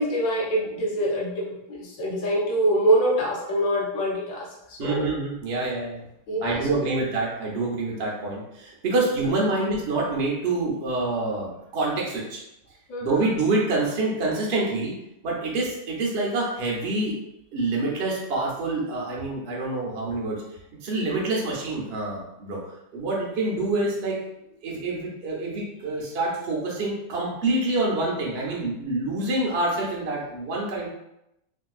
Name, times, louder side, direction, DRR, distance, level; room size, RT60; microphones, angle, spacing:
voice 1, 0.0-5.1 6.3-6.6 6.9-7.0 9.0-9.1 9.5-9.6 12.9-13.2, right 1 dB, 55° left, -5 dB, 1.0 m, -25 dB
voice 2, 4.8-6.0 6.4-12.4 13.0-14.9 15.2-17.1 17.5-20.4 20.8-22.6 22.9-24.2 24.6-30.9, right 2 dB, 90° right, -3 dB, 0.5 m, -26 dB
3.5 x 2.7 x 2.4 m, 0.85 s
omnidirectional pair, 2.3 m